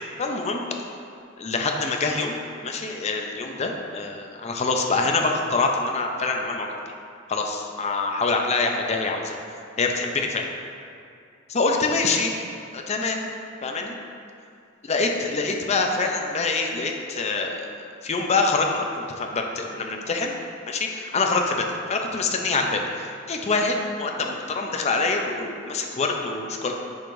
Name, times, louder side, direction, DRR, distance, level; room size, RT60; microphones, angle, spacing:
voice 1, 0.2-0.6 1.4-2.4 2.6-6.7 7.3-9.4 9.8-10.4 11.5-12.3 12.7-13.3 13.6-14.0 14.9-20.3 20.7-26.7, left 3 dB, 35° left, 2 dB, 0.5 m, -25 dB
8.0 x 4.8 x 2.6 m, 2.4 s
head